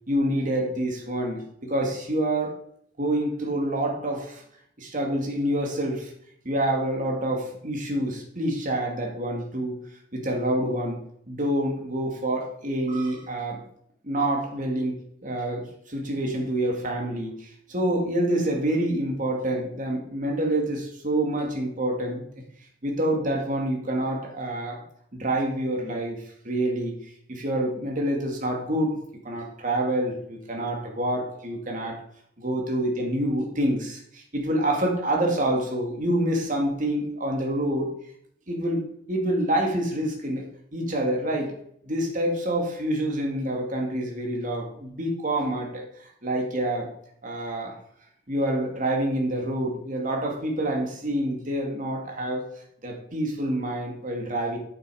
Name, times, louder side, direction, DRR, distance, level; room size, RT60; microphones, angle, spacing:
voice 1, 0.1-2.5 3.0-4.4 4.8-6.1 6.4-9.8 10.1-11.0 11.3-13.6 14.0-22.2 22.8-24.8 25.1-27.0 27.3-28.9 29.2-32.0 32.4-37.9 38.5-38.8 39.1-40.4 40.7-41.6 41.8-46.9 47.2-47.7 48.3-52.5 52.8-54.6, right 1 dB, 45° right, 0 dB, 2.3 m, -27 dB
8.7 x 6.8 x 4.9 m, 0.67 s
head